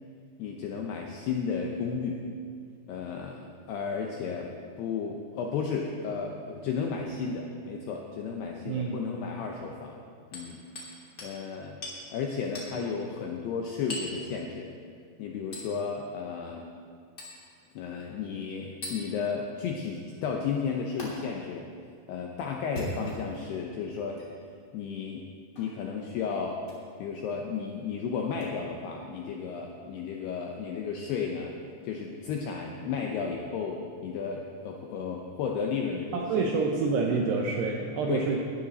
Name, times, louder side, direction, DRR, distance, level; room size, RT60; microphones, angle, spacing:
voice 1, 0.4-2.2 2.9-4.5 4.8-10.0 10.3-10.6 11.2-11.8 12.1-14.7 15.2-16.7 17.8-21.7 22.1-24.2 24.7-25.3 25.6-26.6 27.0-31.5 31.8-36.7 38.1-38.3, left 6 dB, 80° left, 1 dB, 2.4 m, -33 dB
voice 2, 8.7-9.0 36.1-38.4, right 4 dB, 80° right, 1 dB, 2.4 m, -27 dB
Hammer, 10.3-10.9 11.2-11.4 11.8-12.0 12.5-12.7 13.9-14.2 15.5-15.7 17.2-17.4 18.8-19.0 21.0-21.1 22.6-23.4 24.1-24.3 25.5-25.7 26.6-26.8 28.4-28.5, left 1 dB, 25° left, 2.6 m, -38 dB
19.0 x 12.5 x 4.1 m, 2.2 s
omnidirectional pair, 5.9 m